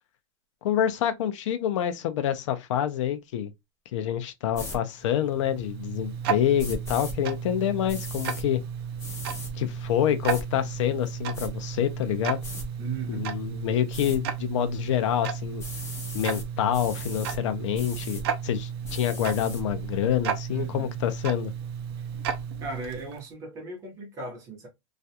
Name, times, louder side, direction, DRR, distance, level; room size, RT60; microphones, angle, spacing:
voice 1, 0.6-3.5 3.9-8.6 9.6-12.4 13.1-15.6 16.1-21.5, left 10 dB, 75° left, 0.5 m, -27 dB
sound 1, 4.5-4.8 6.6-7.1 7.9-8.4 9.0-9.5 10.3-10.4 11.0-11.5 12.4-12.7 13.9-14.2 15.6-16.5 16.7-17.4 17.7-18.2 18.8-19.6, left 2 dB, 15° left, 0.8 m, -39 dB
Tick-tock, 5.0-23.3, right 8 dB, 50° right, 0.5 m, -34 dB
voice 2, 12.8-13.3 20.5-21.0 22.6-24.7, right 4 dB, 20° right, 0.8 m, -36 dB
2.4 x 2.2 x 2.7 m
supercardioid pair, 175°, 16 cm